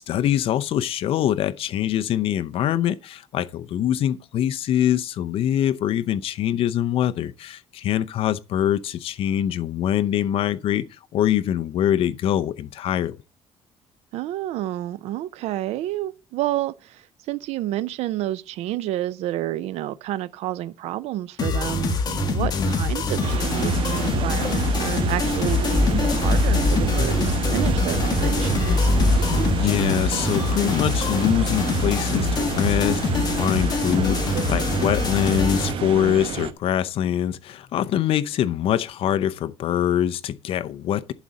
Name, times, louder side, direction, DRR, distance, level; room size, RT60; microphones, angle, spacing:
voice 1, 0.0-13.2 22.4-22.8 29.1-41.1, left 10 dB, 60° left, 0.6 m, -24 dB
voice 2, 14.1-28.9, right 14 dB, 90° right, 0.5 m, -30 dB
sound 1, 21.4-35.7, left 3 dB, 40° left, 1.8 m, -25 dB
sound 2, 23.2-36.5, right 9 dB, 60° right, 1.0 m, -29 dB
sound 3, 24.0-29.5, left 2 dB, 20° left, 1.6 m, -24 dB
11.5 x 4.1 x 7.6 m
cardioid pair, 140°, 11 cm